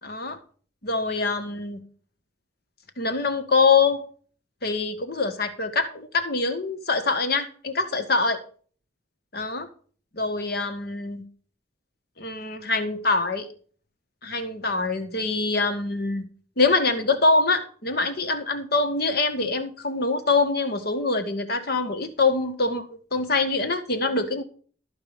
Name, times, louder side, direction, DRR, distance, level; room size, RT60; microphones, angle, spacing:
voice 1, 0.0-0.4 0.8-1.8 3.0-4.1 4.6-8.4 9.3-9.7 10.1-11.2 12.2-13.5 14.2-16.2 16.6-22.8 23.1-24.4, left 3 dB, 60° left, 8 dB, 1.6 m, -24 dB
13.0 x 4.8 x 6.8 m, 0.43 s
head